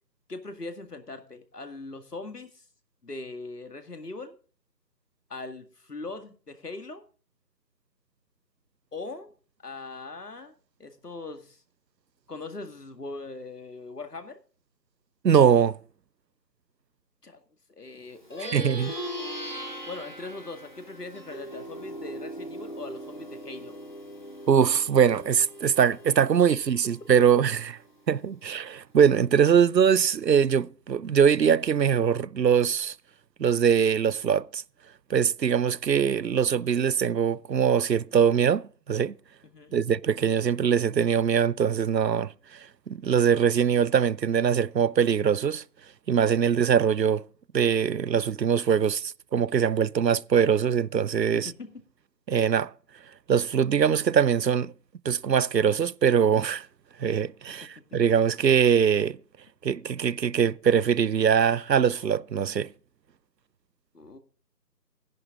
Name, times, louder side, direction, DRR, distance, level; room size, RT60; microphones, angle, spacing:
voice 1, 0.3-2.6 3.0-4.4 5.3-7.0 8.9-9.3 9.6-10.5 10.8-11.6 12.3-14.4 17.2-17.4 17.8-18.7 19.9-23.8 39.4-39.8 51.3-51.7 57.8-58.0 63.9-64.2, left 3 dB, 65° left, 2.1 m, -40 dB
voice 2, 15.2-15.8 18.5-18.9 24.5-27.8 28.1-32.9 33.4-34.6 35.1-39.1 39.7-42.3 42.9-45.6 46.1-47.2 47.5-51.5 52.3-52.7 53.3-54.7 55.0-56.7 57.0-59.2 59.6-62.7, right 7 dB, 80° right, 0.7 m, -22 dB
Plucked string instrument, 18.2-27.9, equal, 30° left, 1.8 m, -40 dB
14.0 x 10.5 x 3.8 m
figure-of-eight pair, 180°, 50 cm